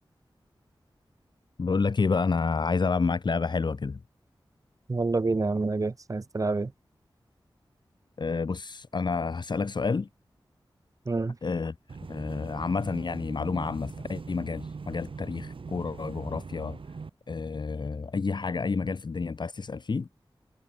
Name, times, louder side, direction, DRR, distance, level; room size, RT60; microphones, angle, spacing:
voice 1, 1.6-4.0 8.2-10.1 11.4-11.7 12.1-16.8 17.3-20.1, left 4 dB, 60° left, 0.9 m, -29 dB
voice 2, 4.9-6.7 11.1-11.3, right 3 dB, 40° right, 0.8 m, -27 dB
sound 1, 11.9-17.1, right 4 dB, 80° right, 3.8 m, -41 dB
wide cardioid pair, 95°, 9 cm